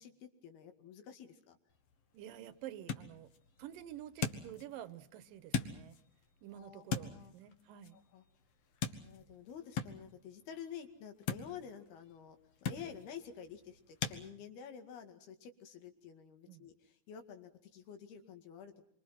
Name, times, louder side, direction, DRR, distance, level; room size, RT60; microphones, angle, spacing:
voice 1, 0.0-1.6 6.5-7.3 8.1-8.2 9.0-18.8, left 8 dB, 80° left, 6 dB, 4.1 m, -50 dB
sound 1, 1.7-14.2, left 6 dB, 50° left, 2.1 m, -43 dB
voice 2, 2.1-3.3 3.6-6.0 6.4-8.0 16.5-16.7, right 11 dB, 70° right, 14 dB, 2.6 m, -49 dB
27.0 x 24.5 x 5.9 m, 0.64 s
omnidirectional pair, 4.5 m